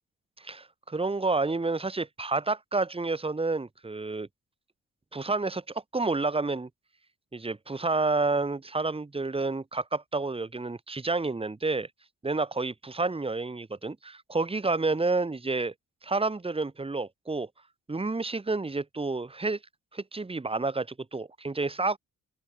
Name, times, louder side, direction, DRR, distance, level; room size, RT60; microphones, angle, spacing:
voice 1, 0.4-4.3 5.1-5.6 5.9-6.7 7.3-11.9 12.2-15.7 16.0-17.5 17.9-19.6 19.9-22.0, right 3 dB, 20° right, 3.1 m, -29 dB
open air
cardioid pair, 90°, 30 cm